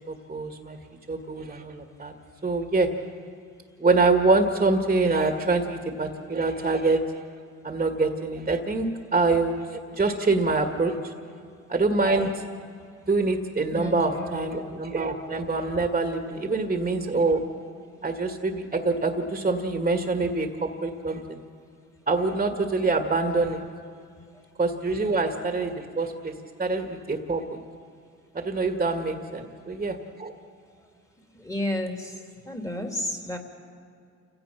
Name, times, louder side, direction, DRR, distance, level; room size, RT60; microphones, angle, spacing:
voice 1, 0.1-0.8 1.1-2.1 2.4-2.9 3.8-7.0 7.6-10.9 11.7-12.4 13.1-17.4 18.0-21.4 22.1-23.6 24.6-26.3 26.6-27.6 28.3-30.3, right 3 dB, 25° right, 4 dB, 1.9 m, -25 dB
voice 2, 13.7-14.5 31.4-32.1 32.5-33.4, left 1 dB, 10° left, 3 dB, 3.0 m, -31 dB
29.0 x 16.5 x 5.9 m, 2.3 s
cardioid pair, 90°, 30 cm